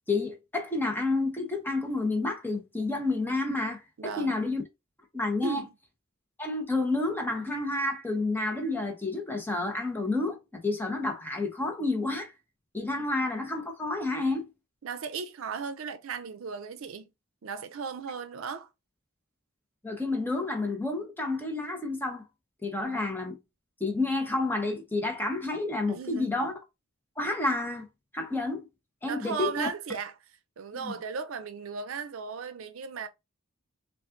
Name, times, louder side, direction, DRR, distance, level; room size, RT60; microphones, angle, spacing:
voice 1, 0.1-4.6 5.1-5.6 6.4-12.3 12.7-14.5 19.8-22.2 22.6-23.4 23.8-26.5 27.2-27.9 28.1-28.7 29.0-29.7 30.7-31.0, left 2 dB, 10° left, 1.0 m, -30 dB
voice 2, 4.0-4.4 5.4-5.7 13.0-13.1 14.8-17.1 17.4-18.7 25.9-26.4 29.0-30.1 30.6-33.1, right 6 dB, 75° right, 0.5 m, -36 dB
5.3 x 2.5 x 2.5 m
head